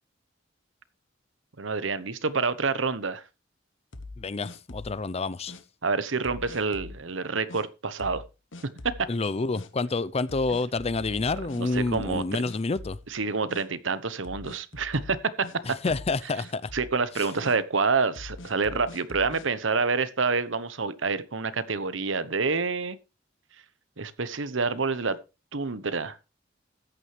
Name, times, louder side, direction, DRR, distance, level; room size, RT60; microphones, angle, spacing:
voice 1, 1.6-3.2 5.8-8.2 8.8-8.9 11.6-12.4 13.1-15.5 16.7-23.0 24.0-25.2 25.5-26.2, right 4 dB, 75° right, 1.0 m, -27 dB
sound 1, 3.9-5.0 5.5-5.6 6.2-7.0 7.5-7.6 8.0-8.3 8.5-9.1 9.5-9.7 10.3-12.2 12.5-13.2 13.5-13.6 14.2-15.6 15.9-16.2 16.4-16.9 17.4-17.6 18.2-19.5, left 2 dB, 75° left, 1.3 m, -42 dB
voice 2, 4.2-5.6 9.1-13.0 15.6-16.7 17.2-17.3, left 3 dB, 35° left, 0.5 m, -28 dB
14.0 x 9.6 x 3.2 m
head